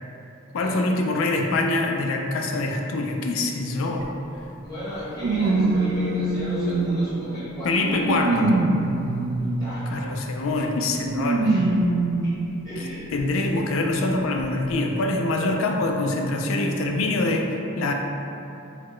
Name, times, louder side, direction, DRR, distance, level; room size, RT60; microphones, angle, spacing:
voice 1, 0.5-4.1 7.6-8.5 9.9-11.7 13.1-17.9, left 2 dB, 80° left, 2 dB, 0.4 m, -24 dB
sound 1, 4.0-4.1 5.2-7.3 7.8-9.9 11.0-12.5 13.2-13.3 14.4-14.5, right 2 dB, 80° right, 0.3 m, -23 dB
voice 2, 4.6-8.5 9.4-10.0 11.4-11.6 12.6-13.2, equal, 15° left, -13 dB, 1.2 m, -34 dB
4.0 x 2.1 x 3.0 m, 2.8 s
head